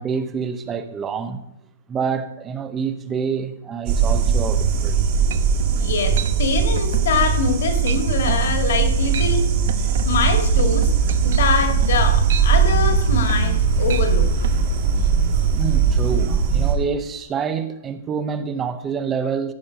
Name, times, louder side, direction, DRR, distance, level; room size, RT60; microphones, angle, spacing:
voice 1, 0.0-1.4 1.9-5.0 15.5-19.5, right 6 dB, 10° right, 0.5 m, -27 dB
sound 1, 3.9-16.7, right 6 dB, 35° right, 1.7 m, -19 dB
sound 2, 4.9-5.0 5.3-5.7 6.2-6.4 6.8-7.1 7.4-7.6 7.9-8.0 8.3-8.5 9.0-9.4 9.7-13.6 13.9-14.1 14.4-14.6, right 9 dB, 55° right, 0.8 m, -33 dB
voice 2, 5.8-9.5 10.0-10.9 11.2-14.3, left 5 dB, 55° left, 2.0 m, -24 dB
15.0 x 5.7 x 5.2 m
hypercardioid pair, 175°, 0 cm